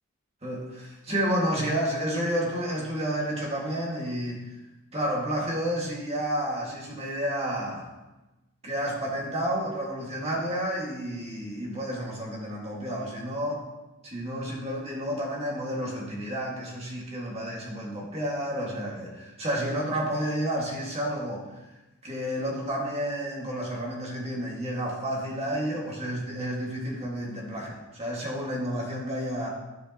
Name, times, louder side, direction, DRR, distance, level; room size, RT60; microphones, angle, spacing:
voice 1, 0.4-4.5 4.9-7.9 8.6-13.6 14.0-21.4 22.0-29.5, equal, 30° right, -3 dB, 1.7 m, -30 dB
12.5 x 5.0 x 2.9 m, 1.1 s
head